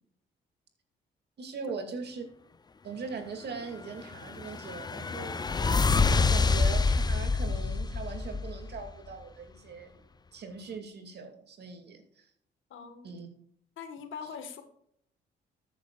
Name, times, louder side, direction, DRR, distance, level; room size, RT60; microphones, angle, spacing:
voice 1, 1.4-2.2 2.8-5.4 6.3-9.9 10.3-12.3 13.0-13.3, right 4 dB, 55° right, 5 dB, 2.3 m, -40 dB
sound 1, 4.0-8.9, left 4 dB, 20° left, 0.5 m, -27 dB
voice 2, 12.7-13.1 13.8-14.6, left 6 dB, 80° left, 8 dB, 1.5 m, -42 dB
13.5 x 8.7 x 2.4 m, 0.69 s
cardioid pair, 90°, 20 cm